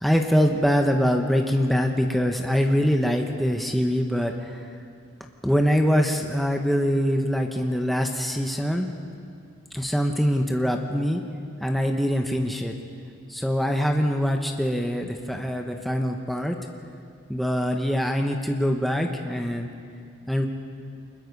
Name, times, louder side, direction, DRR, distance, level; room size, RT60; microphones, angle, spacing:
voice 1, 0.0-4.7 5.4-8.9 9.7-11.2 11.6-12.7 13.3-16.6 17.3-19.7 20.3-20.5, equal, ahead, 2 dB, 1.1 m, -23 dB
24.5 x 21.0 x 5.4 m, 2.3 s
head